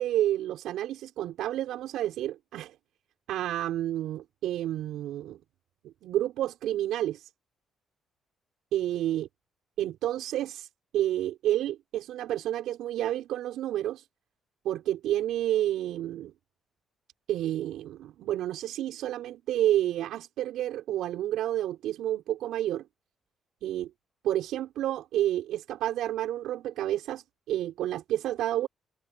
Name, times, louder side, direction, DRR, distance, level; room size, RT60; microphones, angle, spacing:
voice 1, 0.0-2.8 3.3-5.4 5.8-7.3 8.7-9.3 9.8-10.7 10.9-14.0 14.6-16.3 17.3-22.8 23.6-23.9 24.2-28.7, right 12 dB, 85° right, 6.1 m, -30 dB
cardioid pair, 90°, 0 cm